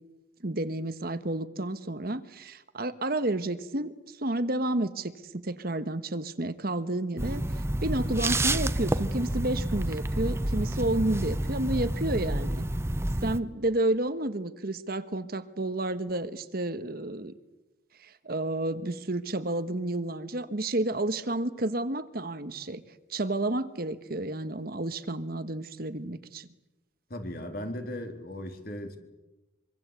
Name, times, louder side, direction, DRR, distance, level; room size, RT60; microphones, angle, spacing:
voice 1, 0.4-7.4 7.8-12.7 13.2-17.3 18.0-22.8 23.1-26.5, right 1 dB, 50° right, 11 dB, 1.3 m, -31 dB
sound 1, 7.2-13.4, right 1 dB, 15° right, 0.8 m, -29 dB
voice 2, 27.1-29.0, left 1 dB, 50° left, 5 dB, 3.6 m, -37 dB
25.0 x 24.5 x 8.3 m, 1.0 s
head